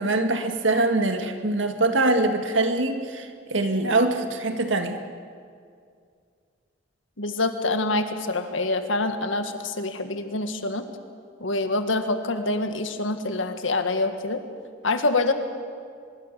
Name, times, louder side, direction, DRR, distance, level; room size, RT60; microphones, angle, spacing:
voice 1, 0.0-5.0, right 2 dB, 75° right, 6 dB, 2.0 m, -23 dB
voice 2, 7.2-10.9 11.4-14.4 14.8-15.3, left 2 dB, 90° left, 8 dB, 1.8 m, -26 dB
24.0 x 22.0 x 6.8 m, 2.2 s
head